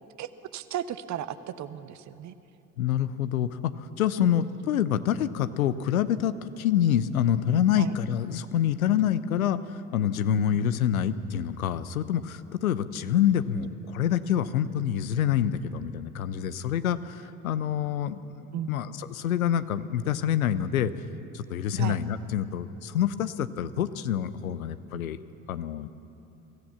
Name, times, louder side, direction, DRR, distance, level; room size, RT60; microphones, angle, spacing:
voice 1, 0.2-2.3 4.2-4.4 7.8-7.9 10.4-10.6 18.5-18.8 21.8-22.0, right 11 dB, 40° right, 13 dB, 1.0 m, -35 dB
voice 2, 2.8-20.9 21.3-25.2 25.5-25.9, left 10 dB, 75° left, 14 dB, 0.8 m, -27 dB
24.0 x 15.5 x 7.0 m, 2.9 s
figure-of-eight pair, 60°, 42 cm